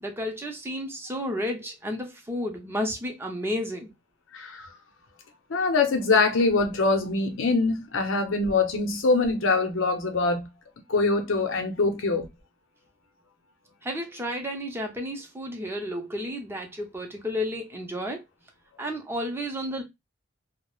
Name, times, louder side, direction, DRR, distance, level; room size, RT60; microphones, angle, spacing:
voice 1, 0.0-3.9 13.8-18.2 18.8-19.8, equal, 10° right, 0.5 m, -32 dB
voice 2, 4.3-4.7 5.5-10.5 10.9-12.3, left 3 dB, 85° left, 0.6 m, -23 dB
2.3 x 2.0 x 3.0 m
head